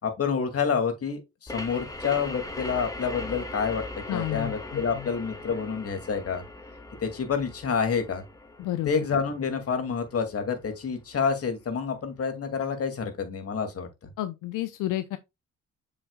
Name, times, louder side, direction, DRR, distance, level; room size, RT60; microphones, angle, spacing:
voice 1, 0.0-3.8 4.1-6.4 7.0-8.2 8.8-13.9, left 6 dB, 50° left, 2.3 m, -28 dB
sound 1, 1.5-10.8, left 2 dB, 10° left, 2.2 m, -40 dB
voice 2, 4.1-5.1 8.6-8.9 14.2-15.2, left 14 dB, 85° left, 0.7 m, -31 dB
7.2 x 6.6 x 2.3 m
cardioid pair, 90°, 30 cm